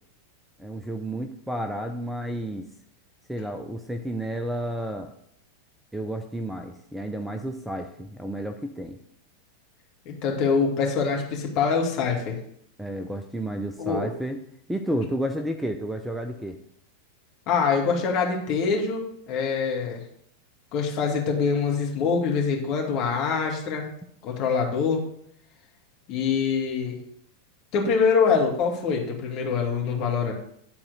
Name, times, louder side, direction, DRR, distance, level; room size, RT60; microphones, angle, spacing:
voice 1, 0.6-2.7 3.3-5.1 5.9-9.0 12.8-14.4 14.7-16.6, right 1 dB, 5° right, 6 dB, 0.6 m, -31 dB
voice 2, 10.1-12.4 13.8-14.1 17.5-20.0 20.7-23.8 24.2-25.0 26.1-26.9 27.7-30.3, left 5 dB, 40° left, 0 dB, 2.1 m, -24 dB
10.5 x 4.3 x 6.4 m, 0.70 s
figure-of-eight pair, 90°, 0 cm